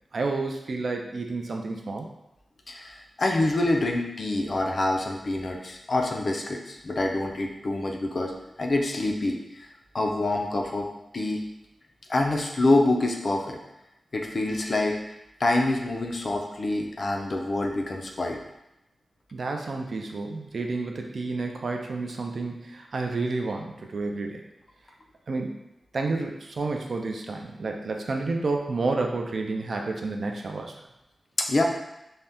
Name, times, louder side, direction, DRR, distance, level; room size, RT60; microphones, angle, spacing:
voice 1, 0.1-2.1 19.3-24.4 25.3-25.6 25.9-30.7, right 3 dB, 50° right, 2 dB, 0.3 m, -30 dB
voice 2, 2.7-8.3 8.6-9.7 9.9-10.9 11.1-11.4 12.1-13.6 14.1-18.4 31.4-31.6, left 2 dB, 40° left, 1 dB, 0.3 m, -26 dB
2.6 x 2.1 x 3.4 m, 0.89 s
wide cardioid pair, 175°, 0 cm